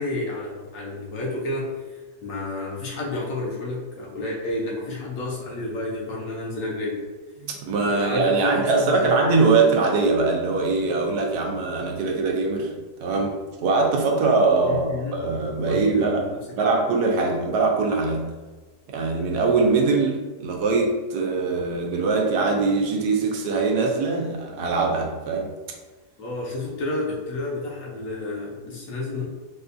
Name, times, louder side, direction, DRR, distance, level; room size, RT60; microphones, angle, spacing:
voice 1, 0.0-1.7 2.2-7.1 7.8-9.4 14.6-15.1 15.6-16.4 16.7-16.8 26.2-29.3, left 2 dB, 65° left, -3 dB, 1.0 m, -30 dB
voice 2, 7.4-18.2 18.9-25.5, right 3 dB, 80° right, 1 dB, 1.1 m, -22 dB
4.2 x 2.3 x 2.5 m, 1.3 s
omnidirectional pair, 1.7 m